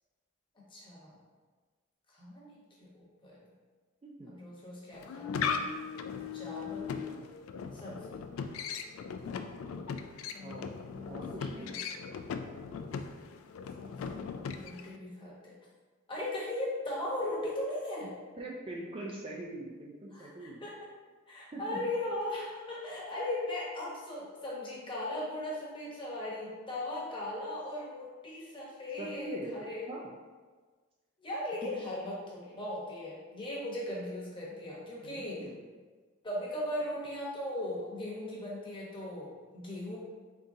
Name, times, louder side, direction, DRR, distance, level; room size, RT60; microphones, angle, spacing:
voice 1, 0.7-1.1 2.1-3.4 4.3-5.7 6.3-7.0 7.7-8.2 10.3-11.2 11.6-12.0 13.8-15.5 16.1-18.1 20.1-20.9 21.3-29.8 31.2-35.4 36.2-40.0, left 1 dB, 25° left, -6 dB, 1.0 m, -38 dB
voice 2, 4.0-4.4 10.4-10.8 11.1-11.7 18.4-20.6 21.5-21.8 29.0-29.5 29.9-30.1 31.6-31.7 35.0-35.6, right 2 dB, 25° right, -2 dB, 0.4 m, -42 dB
sound 1, 4.9-15.0, left 6 dB, 85° left, 0.3 m, -38 dB
3.9 x 3.6 x 2.7 m, 1.4 s
head